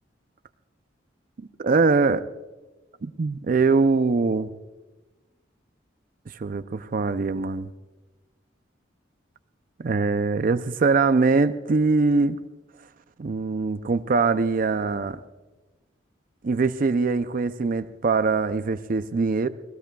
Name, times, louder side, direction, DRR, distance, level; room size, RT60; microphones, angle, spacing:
voice 1, 1.4-2.2 3.0-4.5 6.3-7.7 9.8-12.4 13.2-15.2 16.4-19.5, right 4 dB, 50° right, 11 dB, 0.5 m, -22 dB
27.0 x 18.5 x 2.3 m, 1.2 s
head